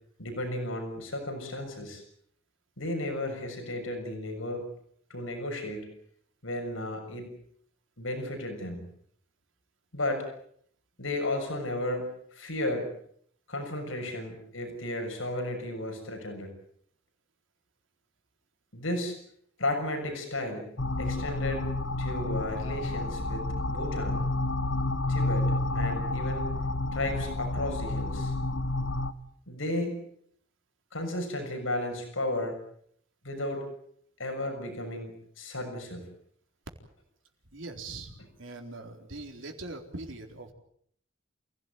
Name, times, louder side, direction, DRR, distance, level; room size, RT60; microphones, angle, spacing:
voice 1, 0.2-2.0 2.8-4.6 5.1-5.9 6.4-7.3 8.0-8.9 9.9-10.3 11.0-12.9 13.5-16.5 18.7-19.2 19.6-21.7 22.0-24.3 25.1-26.5 26.9-28.3 29.5-30.0 30.9-32.6 33.2-33.7 34.2-36.1, left 1 dB, 90° left, 4 dB, 6.8 m, -34 dB
sound 1, 20.8-29.1, left 2 dB, 70° left, 1.4 m, -30 dB
voice 2, 37.5-40.5, right 2 dB, 75° right, 4 dB, 4.2 m, -42 dB
28.5 x 17.0 x 9.3 m, 0.67 s
head